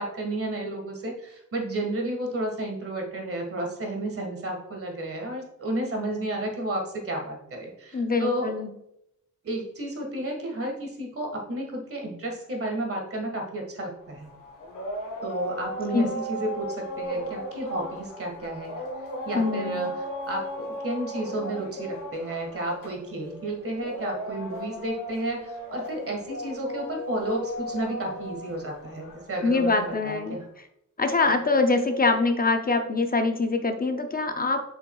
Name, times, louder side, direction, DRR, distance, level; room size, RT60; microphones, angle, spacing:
voice 1, 0.0-8.5 9.4-14.3 15.2-18.7 19.2-19.9 20.3-30.4, right 1 dB, 45° right, 2 dB, 1.7 m, -32 dB
voice 2, 7.9-8.7 15.9-16.1 19.3-19.9 29.4-30.4 31.0-34.6, left 3 dB, 30° left, 6 dB, 0.6 m, -24 dB
sound 1, 14.0-30.4, equal, 90° left, 1.5 m, -37 dB
7.4 x 5.4 x 2.3 m, 0.78 s
wide cardioid pair, 145°, 31 cm